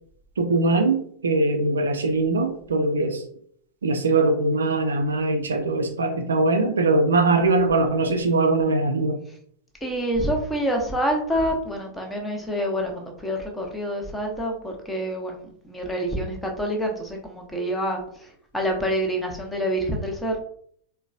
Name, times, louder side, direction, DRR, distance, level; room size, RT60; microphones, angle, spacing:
voice 1, 0.4-3.2 3.8-9.2, right 3 dB, 70° right, 6 dB, 0.4 m, -21 dB
voice 2, 9.8-18.0 18.5-20.4, equal, 5° left, 1 dB, 0.8 m, -27 dB
3.8 x 2.2 x 2.5 m, 0.63 s
figure-of-eight pair, 90°, 0 cm